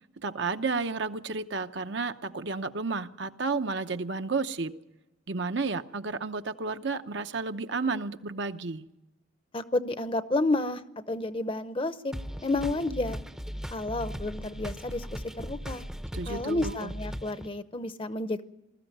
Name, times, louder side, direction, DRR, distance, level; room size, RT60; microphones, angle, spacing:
voice 1, 0.2-4.7 5.3-8.9 16.1-16.9, right 4 dB, 60° right, 9 dB, 0.8 m, -32 dB
voice 2, 9.5-10.8 11.1-12.1 12.4-13.2 13.7-15.8 16.3-18.4, left 2 dB, 25° left, 12 dB, 0.8 m, -30 dB
sound 1, 12.1-17.5, equal, 5° right, 0.7 m, -38 dB
21.0 x 14.0 x 9.3 m, 0.98 s
head